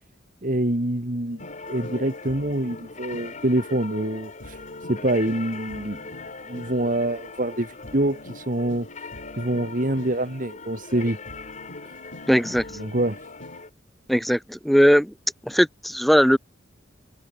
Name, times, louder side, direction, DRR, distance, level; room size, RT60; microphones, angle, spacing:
voice 1, 0.4-6.0 6.5-9.1 9.4-11.2 12.8-13.2, right 1 dB, 45° right, 2.2 m, -26 dB
sound 1, 1.3-13.6, left 1 dB, 80° left, 7.2 m, -46 dB
sound 2, 1.4-13.7, left 3 dB, 40° left, 2.5 m, -40 dB
voice 2, 12.3-12.6 14.1-15.1 15.5-16.4, equal, ahead, 0.6 m, -19 dB
head